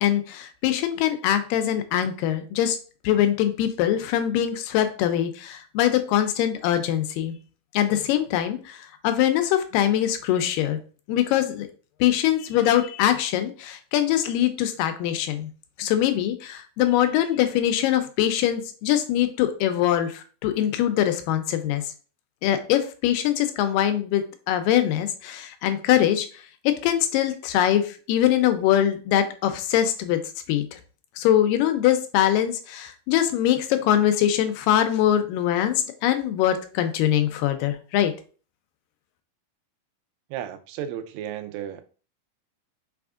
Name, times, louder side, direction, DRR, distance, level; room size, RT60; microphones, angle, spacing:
voice 1, 0.0-2.8 3.0-7.4 7.7-10.8 11.1-11.7 12.0-15.5 15.8-21.8 22.4-26.3 26.7-30.2 30.5-30.6 31.2-38.1, left 11 dB, 85° left, 2.2 m, -23 dB
voice 2, 40.3-41.9, right 10 dB, 90° right, 2.3 m, -34 dB
5.5 x 3.4 x 2.4 m
omnidirectional pair, 3.9 m